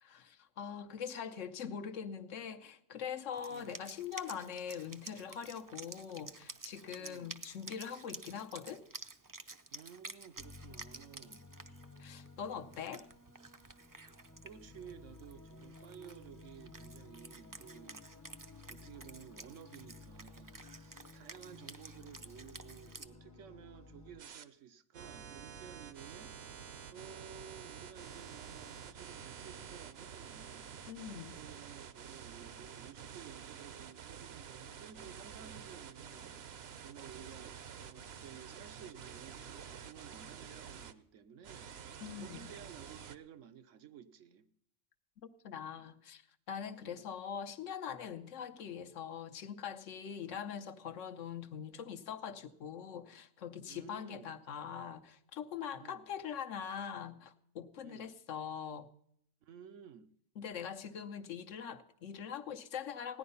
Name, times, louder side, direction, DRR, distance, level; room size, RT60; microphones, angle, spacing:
voice 1, 0.0-8.8 12.0-13.1 30.9-31.4 42.0-42.5 45.4-46.2 46.5-58.9 60.4-63.2, left 7 dB, 85° left, 1.2 m, -43 dB
Wind instrument woodwind instrument, 3.3-23.1, right 3 dB, 30° right, 0.4 m, -52 dB
voice 2, 7.0-7.3 9.7-11.4 14.4-18.1 18.7-26.4 26.9-30.7 31.3-37.6 37.9-44.5 46.8-47.1 50.2-50.4 53.7-54.3 55.8-56.1 57.8-58.2 59.4-60.1, right 8 dB, 85° right, 1.2 m, -54 dB
sound 1, 10.4-24.2, left 3 dB, 20° left, 0.6 m, -55 dB
sound 2, 24.2-24.4 24.9-40.9 41.4-43.2, right 7 dB, 60° right, 0.9 m, -49 dB
16.0 x 10.5 x 5.5 m
omnidirectional pair, 1.3 m